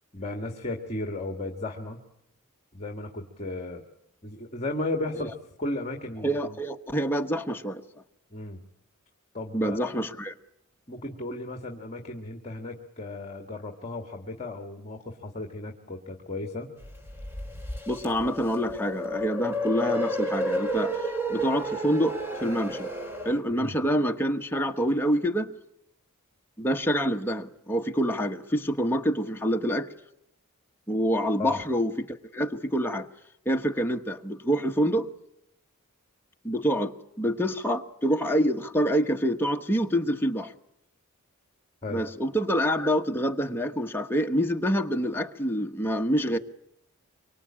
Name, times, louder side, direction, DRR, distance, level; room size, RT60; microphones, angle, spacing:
voice 1, 0.1-2.0 2.7-3.8 4.2-6.6 8.3-8.6 9.3-10.0 10.9-16.7 23.5-23.7 31.4-31.6 41.8-42.0, left 2 dB, 30° left, 1.9 m, -35 dB
voice 2, 6.2-7.8 9.5-10.3 17.9-21.0 21.3-22.9 23.2-25.5 26.6-29.9 30.9-33.1 33.4-35.1 36.4-40.5 41.9-46.4, equal, 10° left, 1.2 m, -26 dB
sound 1, 16.8-23.4, right 1 dB, 10° right, 3.0 m, -31 dB
25.0 x 24.0 x 8.8 m
head